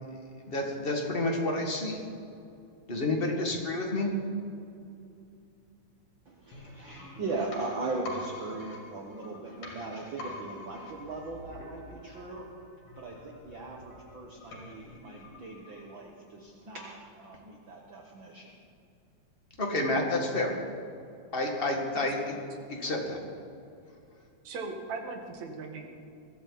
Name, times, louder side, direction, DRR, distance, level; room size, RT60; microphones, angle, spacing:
voice 1, 0.4-2.0 2.9-4.1 19.6-20.5 21.3-22.3 22.8-23.2, left 2 dB, 20° left, 0 dB, 1.8 m, -29 dB
voice 2, 6.3-12.5 13.0-18.6, right 3 dB, 50° right, 0 dB, 1.7 m, -39 dB
sound 1, 6.5-16.2 16.5-16.6, left 2 dB, 90° left, 4.2 m, -46 dB
voice 3, 24.4-25.9, right 4 dB, 75° right, 3 dB, 2.9 m, -38 dB
22.5 x 13.0 x 4.2 m, 2.6 s
omnidirectional pair, 3.3 m